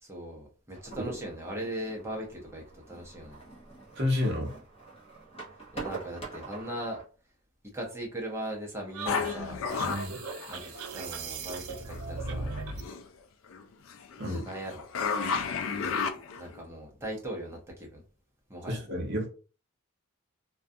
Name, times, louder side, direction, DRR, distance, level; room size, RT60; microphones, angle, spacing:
voice 1, 0.0-3.4 5.7-7.0 7.7-9.6 10.5-12.5 14.2-14.8 16.4-18.0 18.5-18.8, right 1 dB, 10° right, -1 dB, 0.6 m, -39 dB
sound 1, 0.7-7.0, right 3 dB, 25° left, 0.8 m, -45 dB
voice 2, 4.0-4.5 9.8-10.2 14.2-14.4 18.7-19.3, left 1 dB, 55° right, 0 dB, 0.8 m, -30 dB
sound 2, 8.9-12.9, right 4 dB, 90° right, 0.4 m, -38 dB
sound 3, 9.0-11.2 11.9-13.1 13.5-16.6, left 5 dB, 65° left, 0.3 m, -33 dB
2.4 x 2.2 x 2.5 m, 0.38 s
head